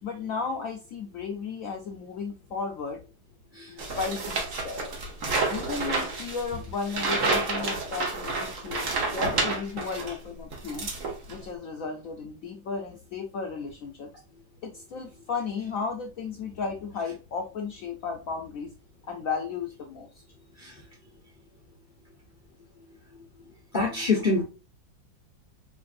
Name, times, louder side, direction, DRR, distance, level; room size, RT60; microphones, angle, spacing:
voice 1, 0.0-3.0 3.7-4.8 5.5-10.9 11.3-14.1 14.6-18.7 19.0-20.1, left 5 dB, 90° left, 2 dB, 0.7 m, -34 dB
sound 1, 3.8-10.2 10.5-11.5, right 3 dB, 50° right, 1.1 m, -29 dB
voice 2, 23.7-24.4, left 3 dB, 40° left, -4 dB, 0.7 m, -25 dB
4.9 x 2.6 x 2.4 m, 0.33 s
omnidirectional pair, 2.1 m